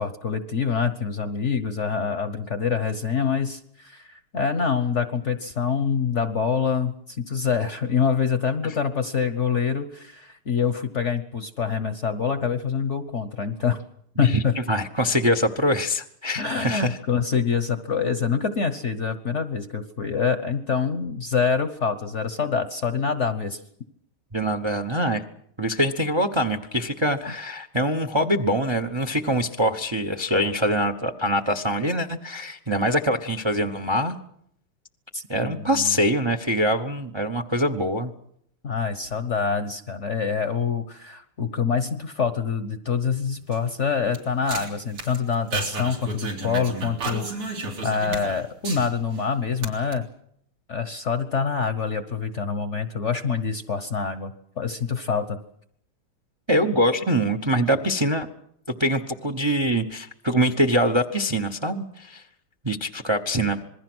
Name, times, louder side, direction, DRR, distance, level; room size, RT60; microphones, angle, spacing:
voice 1, 0.0-13.8 14.2-14.6 16.4-23.6 27.2-27.4 35.1-36.0 38.6-47.5 47.8-50.1 50.7-55.4, left 6 dB, 45° left, 10 dB, 1.0 m, -26 dB
voice 2, 14.7-17.0 24.3-25.2 25.6-34.2 35.3-38.1 56.5-58.3 58.8-62.2 62.6-63.6, equal, 35° right, 8 dB, 0.4 m, -24 dB
sound 1, 43.3-49.2 49.5-49.9, right 2 dB, 90° right, 4.6 m, -33 dB
27.0 x 21.0 x 6.2 m, 0.72 s
omnidirectional pair, 2.4 m